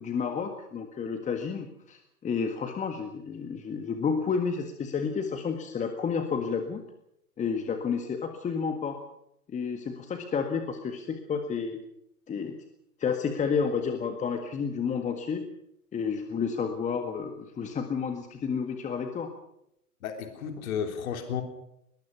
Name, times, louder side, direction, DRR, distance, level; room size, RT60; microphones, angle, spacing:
voice 1, 0.0-6.8 7.4-9.0 9.5-11.8 12.3-12.6 13.0-15.5 15.9-19.3, left 6 dB, 15° left, 6 dB, 1.8 m, -31 dB
voice 2, 20.0-21.4, left 7 dB, 60° left, 6 dB, 3.6 m, -33 dB
22.0 x 21.0 x 6.0 m, 0.76 s
hypercardioid pair, 115°, 47 cm